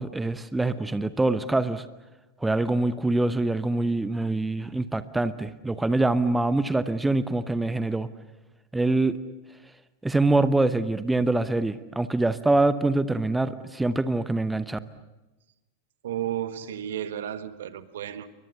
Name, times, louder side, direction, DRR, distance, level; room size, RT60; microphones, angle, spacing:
voice 1, 0.0-1.8 2.4-8.1 8.7-9.2 10.0-14.8, right 2 dB, 5° right, 13 dB, 0.9 m, -24 dB
voice 2, 16.0-18.3, right 10 dB, 60° right, 11 dB, 1.6 m, -33 dB
29.5 x 23.5 x 7.1 m, 1.0 s
figure-of-eight pair, 90°, 0 cm